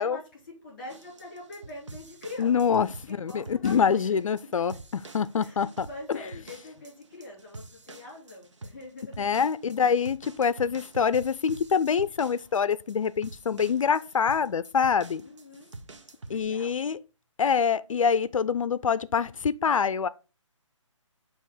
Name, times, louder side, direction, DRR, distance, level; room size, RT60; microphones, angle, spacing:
voice 1, 0.0-4.2 5.4-9.2 9.9-10.1 15.2-15.8 16.3-16.8, left 2 dB, 20° left, 3.6 m, -44 dB
sound 1, 0.9-16.4, right 3 dB, 65° right, 0.9 m, -47 dB
voice 2, 2.4-6.2 9.2-15.2 16.3-17.0 17.4-20.1, left 6 dB, 80° left, 0.4 m, -25 dB
6.5 x 3.0 x 5.4 m
hypercardioid pair, 180°, 17 cm